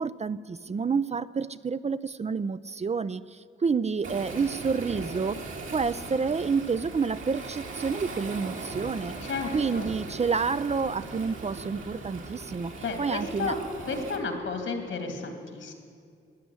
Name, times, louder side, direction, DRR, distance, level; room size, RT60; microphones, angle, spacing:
voice 1, 0.0-5.4 5.7-9.2 9.5-12.7 13.0-13.5, right 5 dB, 30° right, 14 dB, 0.5 m, -29 dB
Waves surf, 4.0-14.2, right 3 dB, 70° right, 2.4 m, -39 dB
voice 2, 9.2-9.9 12.8-13.6 13.9-15.7, left 4 dB, 75° left, 5 dB, 2.7 m, -32 dB
14.0 x 10.0 x 9.6 m, 2.2 s
cardioid pair, 65°, 21 cm